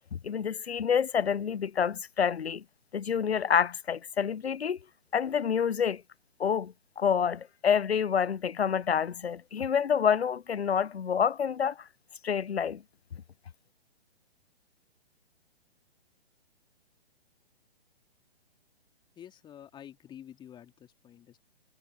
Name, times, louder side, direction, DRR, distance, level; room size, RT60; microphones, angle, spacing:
voice 1, 0.2-2.6 2.9-4.8 5.1-6.0 6.4-11.7 12.2-12.8, left 7 dB, 90° left, 0.5 m, -28 dB
voice 2, 19.2-21.4, left 10 dB, 15° left, 3.3 m, -49 dB
figure-of-eight pair, 130°, 31 cm